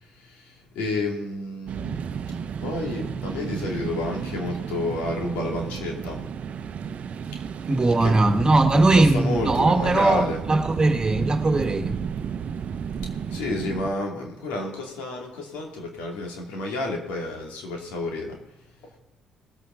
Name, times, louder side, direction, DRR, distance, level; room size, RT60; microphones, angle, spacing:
voice 1, 0.0-6.5 7.3-7.5 8.0-8.1 8.7-10.4 13.0-19.0, left 2 dB, 85° left, 2.6 m, -31 dB
sound 1, 1.7-13.9, right 7 dB, 60° right, 0.7 m, -32 dB
voice 2, 7.7-12.0, right 2 dB, 30° right, 1.6 m, -20 dB
19.5 x 8.5 x 3.9 m
supercardioid pair, 60°, 3 cm